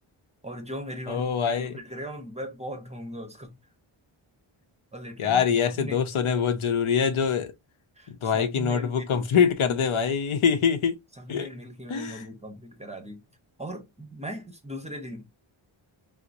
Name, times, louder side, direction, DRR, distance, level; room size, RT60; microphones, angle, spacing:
voice 1, 0.4-3.6 4.9-5.5 5.7-6.0 8.0-9.0 9.4-10.0 11.2-13.2 13.6-15.3, equal, 15° right, 0.8 m, -39 dB
voice 2, 1.1-1.8 5.2-7.5 8.1-11.0 11.3-11.5 11.9-12.2, left 7 dB, 70° left, 0.8 m, -24 dB
4.4 x 2.1 x 2.5 m
wide cardioid pair, 115°, 50 cm